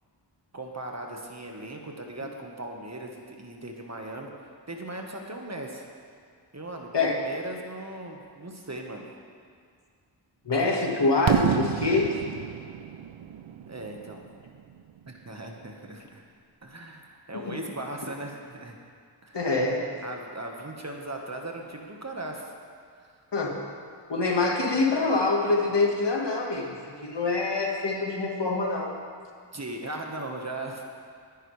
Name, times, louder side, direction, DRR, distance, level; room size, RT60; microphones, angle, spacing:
voice 1, 0.5-4.3 4.7-5.9 6.5-9.1 13.7-14.2 15.1-16.2 16.6-18.8 19.2-19.5 20.0-22.5 29.5-30.8, right 2 dB, 35° right, 1 dB, 1.4 m, -38 dB
voice 2, 10.4-12.2 17.3-17.6 19.3-19.9 23.3-23.6 24.1-29.0, left 3 dB, 65° left, 0 dB, 1.7 m, -25 dB
Fireworks, 11.3-15.1, right 9 dB, 90° right, 0.6 m, -30 dB
19.0 x 10.0 x 3.3 m, 2.1 s
wide cardioid pair, 75°, 45 cm